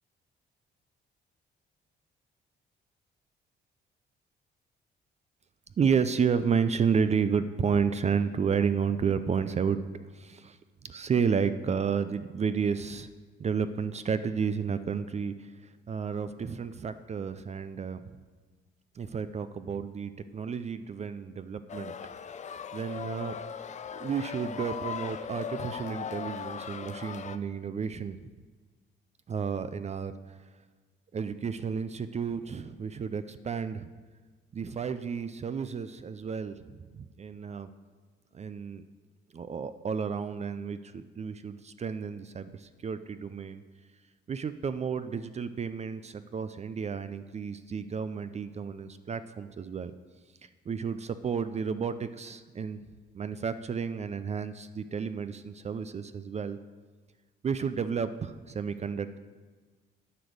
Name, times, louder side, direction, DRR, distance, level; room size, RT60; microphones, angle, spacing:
voice 1, 5.8-9.8 10.1-13.1 13.4-15.5 15.9-18.0 19.0-21.9 22.7-23.4 24.0-28.3 29.3-30.4 31.1-33.9 34.5-37.7 38.3-38.8 39.3-43.6 44.3-49.9 50.7-52.8 53.1-56.6 57.4-59.2, right 6 dB, 35° right, 12 dB, 0.4 m, -31 dB
sound 1, 21.7-27.4, left 7 dB, 35° left, 0.5 m, -38 dB
9.8 x 5.2 x 6.5 m, 1.4 s
cardioid pair, 90°, 20 cm